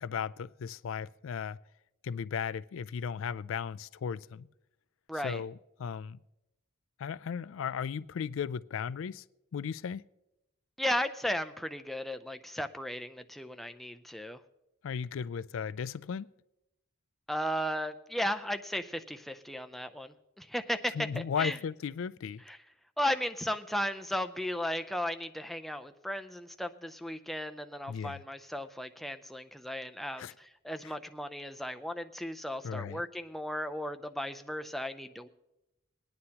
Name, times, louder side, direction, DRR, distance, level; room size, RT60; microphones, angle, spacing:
voice 1, 0.0-1.6 2.0-4.5 5.2-6.2 7.0-9.2 9.5-10.0 14.8-16.3 20.9-22.4 27.9-28.2 30.2-30.3 30.8-30.9 32.6-33.0, left 7 dB, 70° left, 0.3 m, -36 dB
voice 2, 5.1-5.4 10.8-14.4 17.3-21.6 22.5-22.6 23.0-35.3, equal, ahead, 0.4 m, -35 dB
21.0 x 9.6 x 2.9 m
head